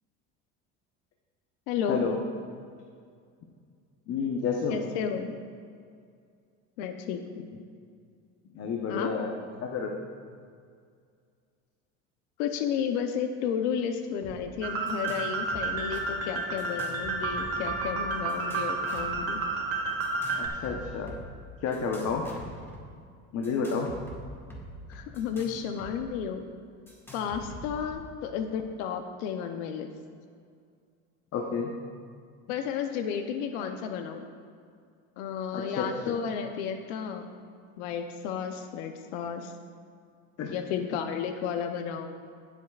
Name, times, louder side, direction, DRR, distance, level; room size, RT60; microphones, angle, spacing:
voice 1, 1.7-2.1 4.7-5.3 6.8-7.5 8.9-9.1 12.4-19.4 24.9-26.5 27.1-29.9 32.5-34.2 35.2-37.3 37.8-39.5 40.5-42.1, left 7 dB, 85° left, 6 dB, 0.8 m, -32 dB
voice 2, 4.1-4.8 8.5-9.3 9.6-9.9 20.4-21.1 21.6-22.3 23.3-23.9 31.3-31.7 35.5-36.1 40.4-40.5, left 5 dB, 50° left, 1 dB, 1.0 m, -30 dB
sound 1, 14.2-14.4 14.6-15.2 15.5-16.0 16.6-18.0 18.3-19.2 20.0-21.3 21.7-22.8 23.4-26.0 26.2-26.3 26.9-27.9, right 1 dB, 5° left, 1.9 m, -45 dB
sound 2, 14.6-20.5, right 3 dB, 45° right, 1.6 m, -31 dB
15.5 x 8.2 x 2.4 m, 2.2 s
supercardioid pair, 100°, 33 cm